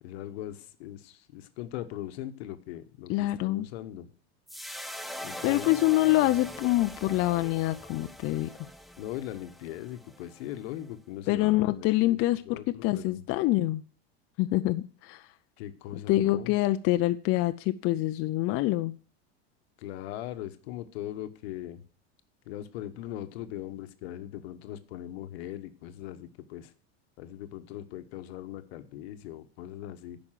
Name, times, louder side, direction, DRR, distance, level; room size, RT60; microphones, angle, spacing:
voice 1, 0.0-4.1 5.2-5.7 9.0-12.2 12.5-13.2 15.6-16.5 19.8-21.8 22.5-26.7 27.2-30.2, left 12 dB, 75° left, 10 dB, 1.0 m, -40 dB
voice 2, 3.1-3.7 5.4-8.5 11.3-13.8 14.4-15.2 16.1-18.9, left 17 dB, 45° left, 9 dB, 0.5 m, -26 dB
sound 1, 4.5-10.9, equal, ahead, 0.5 m, -42 dB
9.0 x 5.3 x 7.3 m, 0.42 s
supercardioid pair, 120°, 32 cm